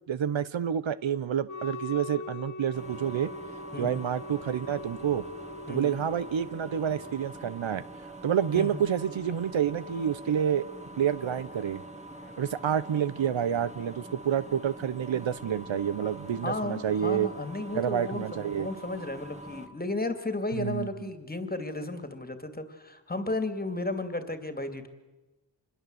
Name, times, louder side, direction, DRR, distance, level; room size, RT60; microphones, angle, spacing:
voice 1, 0.1-3.3 3.8-5.2 5.7-7.8 8.2-10.7 11.0-11.8 12.4-17.3 17.7-18.7 20.5-20.9, right 9 dB, 85° right, 16 dB, 1.0 m, -28 dB
Wind instrument woodwind instrument, 1.5-7.3, left 2 dB, 40° left, 1.5 m, -42 dB
sound 1, 2.7-19.7, right 1 dB, 15° right, 2.2 m, -45 dB
voice 2, 16.4-24.9, left 2 dB, 20° left, 8 dB, 2.5 m, -34 dB
26.5 x 21.5 x 8.0 m, 1.1 s
wide cardioid pair, 120°, 45 cm